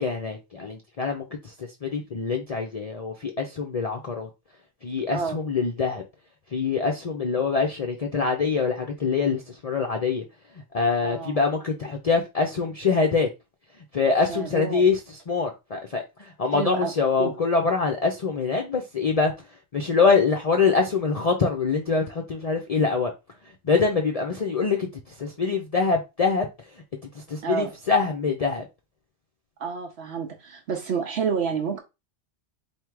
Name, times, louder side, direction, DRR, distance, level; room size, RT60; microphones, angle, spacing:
voice 1, 0.0-4.3 4.8-6.0 6.5-10.2 10.5-13.3 13.9-23.1 23.4-26.5 26.7-26.8 27.1-28.7, left 4 dB, 40° left, 0.6 m, -24 dB
voice 2, 11.0-11.4 14.3-14.8 16.5-16.9 17.2-17.3 27.4-27.7 29.6-31.8, right 5 dB, 70° right, 1.0 m, -29 dB
3.6 x 2.6 x 4.5 m
omnidirectional pair, 1.2 m